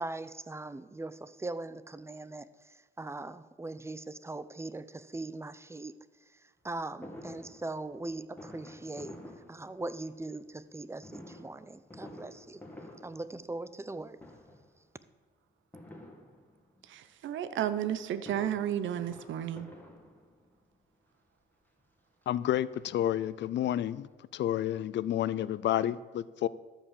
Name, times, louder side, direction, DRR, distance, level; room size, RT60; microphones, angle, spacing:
voice 1, 0.0-5.9 6.3-12.6 13.0-14.2, right 2 dB, 15° right, 0.6 m, -40 dB
Fireworks, 7.0-10.2 11.0-13.9 14.2-14.8 15.7-16.8 18.0-20.6 21.4-21.5 21.8-21.9 22.2-23.5 23.8-23.9 24.1-24.2, left 1 dB, 10° left, 2.1 m, -50 dB
voice 2, 16.8-19.7, right 10 dB, 75° right, 0.8 m, -33 dB
voice 3, 22.3-24.1 24.3-26.5, left 12 dB, 65° left, 0.5 m, -30 dB
13.0 x 5.5 x 7.5 m
cardioid pair, 90°, 20 cm